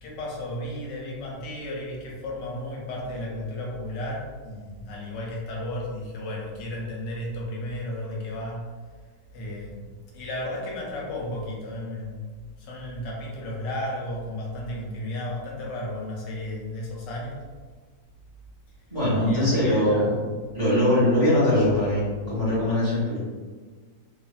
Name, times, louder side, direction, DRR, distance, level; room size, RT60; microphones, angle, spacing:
voice 1, 0.0-8.7 9.3-9.9 10.1-12.3 12.6-17.4 19.2-20.2, left 1 dB, 80° left, -3 dB, 1.3 m, -33 dB
voice 2, 18.9-20.2 20.5-23.2, left 1 dB, 25° right, -10 dB, 0.9 m, -22 dB
3.0 x 2.4 x 2.3 m, 1.5 s
omnidirectional pair, 1.9 m